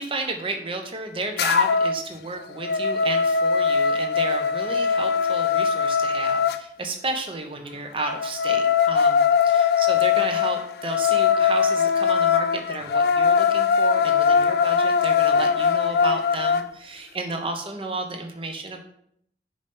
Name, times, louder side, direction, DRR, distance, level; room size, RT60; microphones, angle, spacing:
voice 1, 0.0-18.8, right 2 dB, 30° right, 4 dB, 0.9 m, -32 dB
sound 1, 1.4-2.0 2.4-6.6 8.1-16.7, left 6 dB, 60° left, 0.3 m, -21 dB
5.5 x 5.0 x 5.3 m, 0.70 s
head